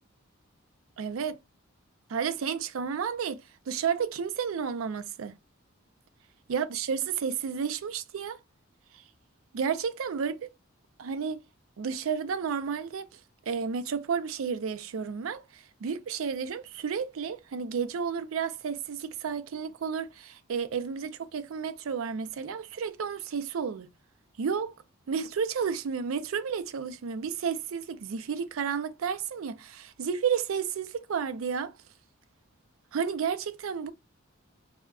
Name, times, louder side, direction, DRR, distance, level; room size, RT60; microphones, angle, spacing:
voice 1, 1.0-1.3 2.1-5.3 6.5-8.4 9.5-10.5 11.0-11.4 11.8-13.2 13.5-23.9 24.4-24.8 25.1-31.7 32.9-33.9, right 6 dB, 70° right, 0.4 m, -32 dB
2.3 x 2.1 x 3.5 m
head